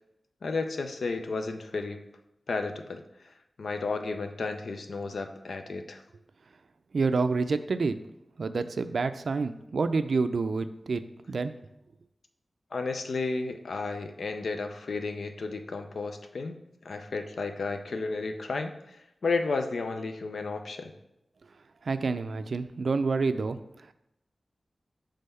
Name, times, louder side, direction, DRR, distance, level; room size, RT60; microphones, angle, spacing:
voice 1, 0.4-2.0 2.5-6.0 12.7-16.6 16.8-20.9, left 3 dB, 85° left, 6 dB, 0.5 m, -33 dB
voice 2, 6.9-8.0 8.4-11.0 11.3-11.5 21.9-23.6, right 4 dB, 75° right, 10 dB, 0.3 m, -28 dB
5.5 x 3.5 x 5.4 m, 0.86 s
wide cardioid pair, 100°, 0 cm